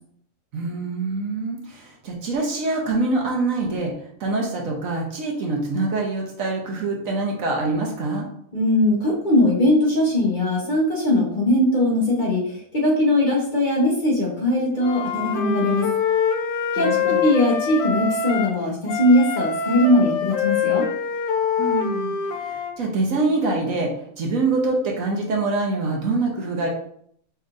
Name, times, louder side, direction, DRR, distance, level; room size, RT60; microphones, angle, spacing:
voice 1, 0.5-3.9 4.2-8.3 16.8-17.2 21.6-26.7, right 3 dB, 65° right, 0 dB, 1.2 m, -25 dB
voice 2, 8.5-15.9 16.7-20.8, left 1 dB, 35° left, -3 dB, 1.1 m, -20 dB
Wind instrument woodwind instrument, 14.8-18.6 18.9-22.7, left 6 dB, 65° left, 0.6 m, -24 dB
5.4 x 3.4 x 2.5 m, 0.65 s
omnidirectional pair, 1.6 m